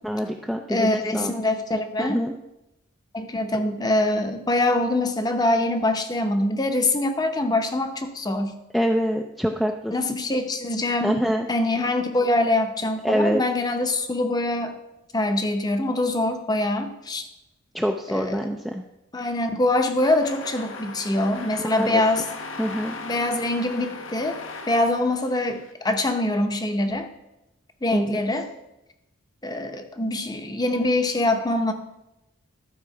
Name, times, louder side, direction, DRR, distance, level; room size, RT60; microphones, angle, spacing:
voice 1, 0.0-1.3 2.0-2.3 8.7-9.9 11.0-11.5 13.0-13.4 17.7-18.8 21.6-22.0 22.6-22.9 27.9-28.2, equal, ahead, 2 dB, 0.4 m, -25 dB
voice 2, 0.7-2.2 3.1-8.6 9.9-11.2 11.5-14.8 15.1-17.2 18.1-18.4 19.1-22.3 23.0-24.4 24.7-27.1 27.8-28.5 29.4-31.7, left 2 dB, 20° left, 6 dB, 0.7 m, -24 dB
sound 1, 19.9-25.7, left 3 dB, 70° left, 0.9 m, -38 dB
12.0 x 4.7 x 6.0 m, 0.91 s
head